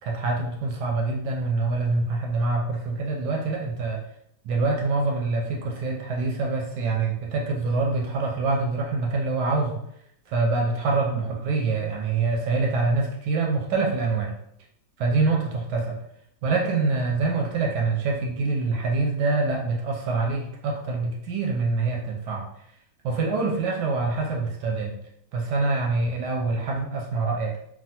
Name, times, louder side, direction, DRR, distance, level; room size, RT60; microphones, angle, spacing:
voice 1, 0.0-4.0 4.4-9.8 10.3-14.3 15.0-16.0 16.4-22.5 23.0-25.0 25.3-27.6, right 3 dB, 75° right, -1 dB, 1.0 m, -25 dB
3.3 x 2.2 x 2.7 m, 0.75 s
omnidirectional pair, 2.1 m